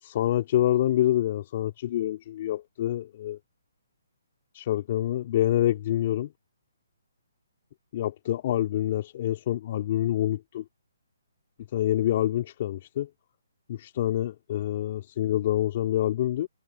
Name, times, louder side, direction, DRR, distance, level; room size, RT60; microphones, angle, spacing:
voice 1, 0.0-3.4 4.5-6.3 7.9-10.6 11.7-13.1 13.7-16.5, left 12 dB, 35° left, 3.9 m, -26 dB
hypercardioid pair, 170°, 0 cm